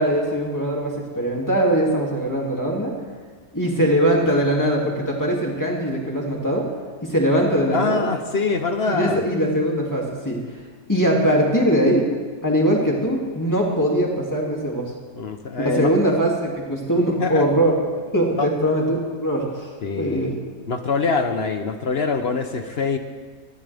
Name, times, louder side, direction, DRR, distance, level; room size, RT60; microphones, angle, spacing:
voice 1, 0.0-2.9 3.5-6.7 7.0-8.1 8.9-10.4 10.9-12.0 12.4-14.9 15.6-17.7 18.1-19.7 20.0-20.3, equal, 10° left, -2 dB, 2.6 m, -21 dB
voice 2, 7.7-9.2 15.1-16.0 17.1-17.5 18.4-18.5 19.8-20.4 20.7-23.0, left 4 dB, 50° left, 7 dB, 0.9 m, -24 dB
20.0 x 14.5 x 3.5 m, 1.5 s
omnidirectional pair, 1.8 m